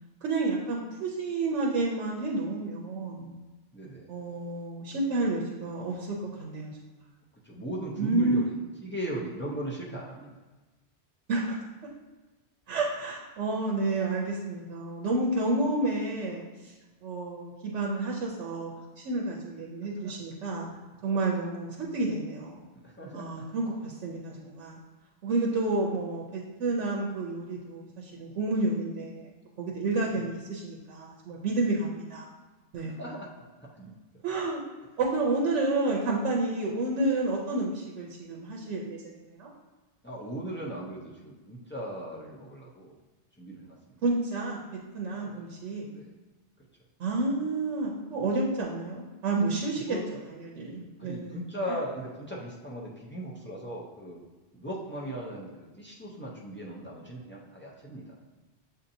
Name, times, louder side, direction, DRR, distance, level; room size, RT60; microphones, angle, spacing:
voice 1, 0.2-3.3 4.1-6.8 8.0-8.5 11.3-11.6 12.7-16.7 17.0-18.7 19.0-20.7 21.0-22.7 23.1-24.8 25.2-29.3 29.6-32.3 32.7-33.0 34.2-34.6 35.0-39.5 44.0-45.9 47.0-51.4, right 2 dB, 85° right, -2 dB, 1.0 m, -30 dB
voice 2, 3.7-4.1 7.4-10.3 19.9-20.1 22.8-23.4 30.0-30.1 32.8-33.3 33.6-33.9 40.0-42.9 43.4-43.8 45.1-45.4 45.9-46.1 49.8-50.0 51.0-54.2 54.5-58.2, right 1 dB, 15° left, -4 dB, 0.5 m, -38 dB
7.2 x 2.8 x 2.6 m, 1.2 s
omnidirectional pair, 1.2 m